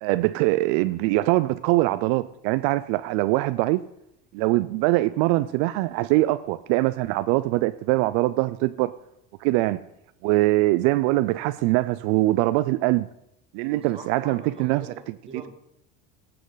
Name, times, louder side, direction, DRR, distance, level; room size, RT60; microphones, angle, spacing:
voice 1, 0.0-3.8 4.3-8.9 9.4-9.8 10.2-13.1 13.5-15.1, right 18 dB, 75° right, 0.5 m, -23 dB
voice 2, 13.7-15.6, right 3 dB, 20° right, 2.0 m, -43 dB
15.5 x 7.7 x 4.0 m
cardioid pair, 140°, 30 cm